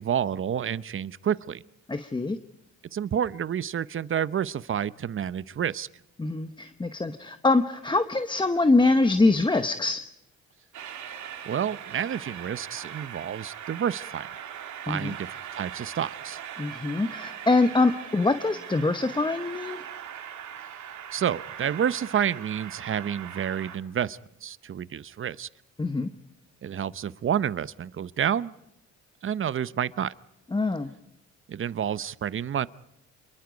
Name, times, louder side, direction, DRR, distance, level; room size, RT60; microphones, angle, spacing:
voice 1, 0.0-1.6 2.9-5.9 11.5-14.3 14.9-15.3 15.5-16.4 21.1-25.5 26.6-28.5 29.2-30.1 31.5-32.7, right 9 dB, 45° right, 17 dB, 0.8 m, -29 dB
voice 2, 1.9-2.4 6.2-10.0 14.9-15.1 16.6-19.8 25.8-26.1 30.5-30.9, left 3 dB, 15° left, 10 dB, 1.0 m, -24 dB
Train, 10.7-23.8, right 9 dB, 70° right, 2.5 m, -40 dB
27.5 x 22.5 x 5.2 m, 0.84 s
cardioid pair, 90°, 30 cm